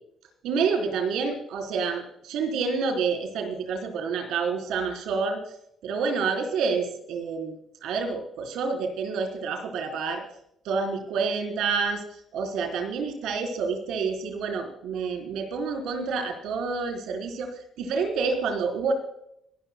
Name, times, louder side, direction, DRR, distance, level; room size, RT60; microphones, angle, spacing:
voice 1, 0.4-5.4 5.8-7.5 7.8-10.2 10.6-12.0 12.3-17.5 17.8-18.9, right 5 dB, 85° right, 3 dB, 3.7 m, -28 dB
26.0 x 12.5 x 2.2 m, 0.72 s
cardioid pair, 90°, 0 cm